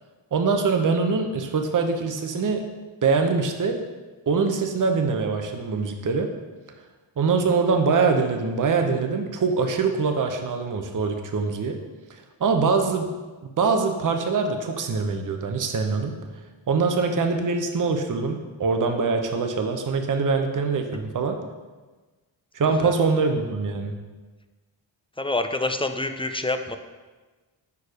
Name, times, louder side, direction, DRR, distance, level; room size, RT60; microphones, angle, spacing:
voice 1, 0.3-2.6 3.0-3.8 4.3-6.3 7.2-11.8 12.4-13.1 13.6-16.1 16.7-21.4 22.5-23.9, right 4 dB, 40° right, 5 dB, 0.8 m, -23 dB
voice 2, 25.2-26.8, left 2 dB, 15° left, 8 dB, 0.3 m, -27 dB
4.8 x 4.7 x 4.8 m, 1.3 s
cardioid pair, 50°, 49 cm